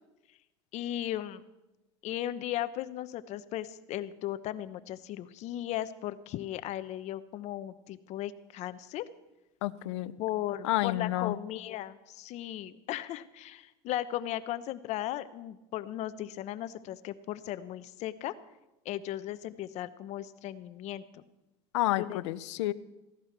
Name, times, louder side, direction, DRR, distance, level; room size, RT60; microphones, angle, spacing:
voice 1, 0.7-1.4 2.0-9.0 10.2-18.3 18.8-21.2 22.0-22.2, left 13 dB, 50° left, 13 dB, 0.9 m, -36 dB
voice 2, 9.6-10.2 10.6-11.4 21.7-22.7, left 16 dB, 80° left, 16 dB, 0.7 m, -30 dB
16.0 x 11.5 x 6.0 m, 0.98 s
supercardioid pair, 115°, 15 cm